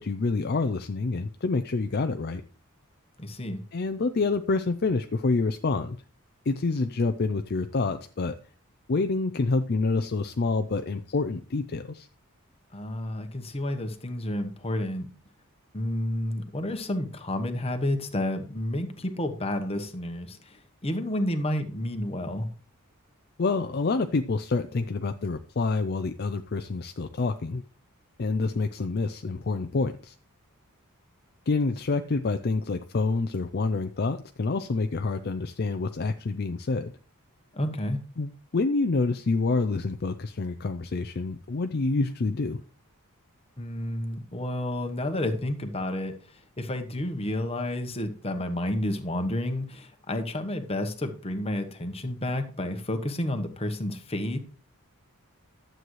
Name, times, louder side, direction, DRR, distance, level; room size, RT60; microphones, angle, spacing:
voice 1, 0.0-2.4 3.7-6.0 6.5-8.3 8.9-12.1 23.4-27.6 28.2-30.1 31.5-36.9 38.2-42.6, left 3 dB, 45° left, 8 dB, 0.5 m, -27 dB
voice 2, 3.2-3.6 12.7-15.1 15.7-22.5 37.5-38.0 43.6-46.2 46.6-54.4, left 1 dB, 25° left, 7 dB, 1.1 m, -30 dB
12.0 x 7.7 x 3.2 m, 0.38 s
head